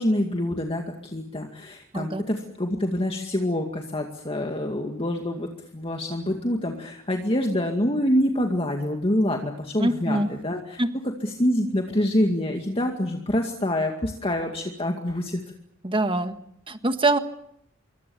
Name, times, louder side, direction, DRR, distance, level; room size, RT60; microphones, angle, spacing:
voice 1, 0.0-10.8 11.2-15.4, left 1 dB, 25° left, 2 dB, 2.2 m, -26 dB
voice 2, 9.8-10.3 10.8-10.9 15.8-16.4 16.7-17.2, right 2 dB, 25° right, 8 dB, 1.6 m, -23 dB
27.0 x 23.5 x 7.2 m, 0.74 s
head